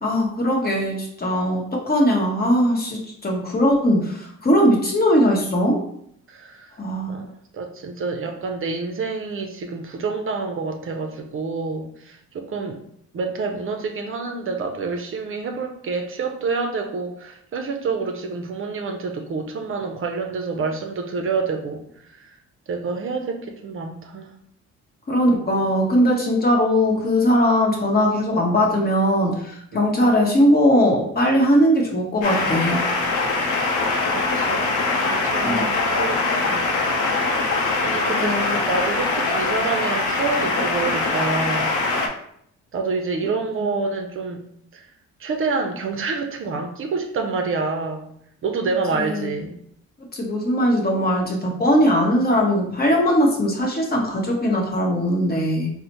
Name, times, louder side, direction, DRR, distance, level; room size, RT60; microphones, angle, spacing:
voice 1, 0.0-5.8 6.8-7.2 25.1-32.8 35.4-35.7 38.0-38.6 43.6-43.7 48.9-49.3 50.1-55.7, equal, 30° left, 0 dB, 0.9 m, -20 dB
voice 2, 6.3-6.7 7.1-7.3 7.5-12.8 13.1-21.8 22.1-22.4 22.7-24.3 29.7-30.0 34.1-34.7 35.0-36.6 36.9-37.1 37.3-41.7 42.7-44.4 44.7-44.8 45.2-48.1 48.4-49.6, right 4 dB, 45° right, 4 dB, 0.5 m, -28 dB
sound 1, 32.2-42.1, left 3 dB, 75° left, 0.6 m, -22 dB
4.0 x 2.1 x 2.9 m, 0.69 s
cardioid pair, 90°, 30 cm